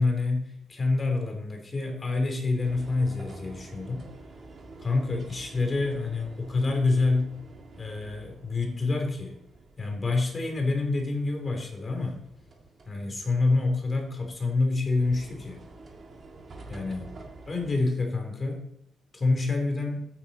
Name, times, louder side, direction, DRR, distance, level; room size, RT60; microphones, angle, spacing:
voice 1, 0.0-4.0 4.8-7.3 7.8-9.4 9.8-12.2 12.9-15.6 16.7-17.1 17.5-18.7 19.1-20.0, left 3 dB, 25° left, 3 dB, 3.0 m, -27 dB
sound 1, 2.6-17.8, right 3 dB, 40° right, 2.3 m, -49 dB
13.5 x 9.4 x 4.2 m, 0.78 s
cardioid pair, 135°, 0 cm